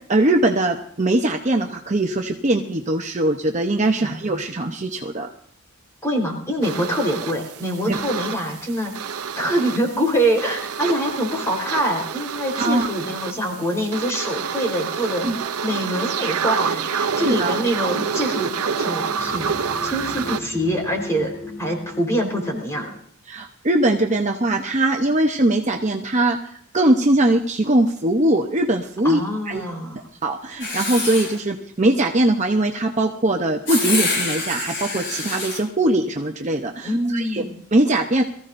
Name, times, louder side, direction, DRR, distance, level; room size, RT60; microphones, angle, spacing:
voice 1, 0.1-5.3 7.9-8.0 12.6-12.9 15.2-15.4 17.3-17.6 23.3-26.4 26.7-29.2 29.5-29.6 30.2-37.4 37.7-38.2, right 1 dB, 30° right, 2 dB, 0.9 m, -21 dB
voice 2, 4.0-4.4 6.0-8.9 9.4-15.2 15.6-18.5 18.8-19.5 19.8-23.0 29.0-30.0 36.8-37.5, equal, 15° left, 1 dB, 4.1 m, -25 dB
sound 1, 6.6-20.4, right 6 dB, 80° right, 0.7 m, -28 dB
sound 2, 17.0-23.0, left 2 dB, 75° left, 2.7 m, -37 dB
Writing, 30.6-31.4 33.7-35.6, left 3 dB, 50° left, 5.2 m, -26 dB
23.5 x 15.0 x 2.6 m, 0.64 s
head